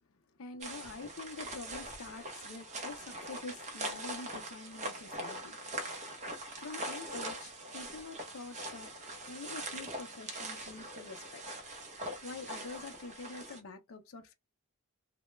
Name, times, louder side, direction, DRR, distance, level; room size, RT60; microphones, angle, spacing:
voice 1, 0.4-5.6 6.6-8.9 9.3-11.4 12.2-14.3, left 3 dB, 65° left, 0.5 m, -46 dB
sound 1, 0.6-13.6, right 1 dB, 30° right, 0.6 m, -42 dB
2.2 x 2.0 x 3.0 m
head